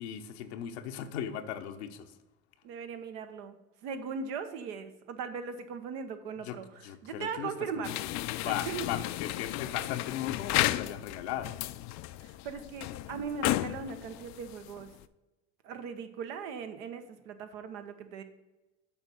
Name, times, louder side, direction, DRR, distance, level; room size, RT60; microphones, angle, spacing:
voice 1, 0.0-2.1 6.4-6.6 6.8-7.5 7.9-11.6, left 10 dB, 85° left, 8 dB, 0.8 m, -37 dB
voice 2, 2.6-7.9 8.4-8.9 12.2-14.9 15.6-18.2, right 6 dB, 75° right, 8 dB, 1.0 m, -39 dB
sound 1, 7.8-15.0, left 16 dB, 60° left, 0.4 m, -34 dB
7.3 x 5.2 x 6.6 m, 1.1 s
supercardioid pair, 85°, 32 cm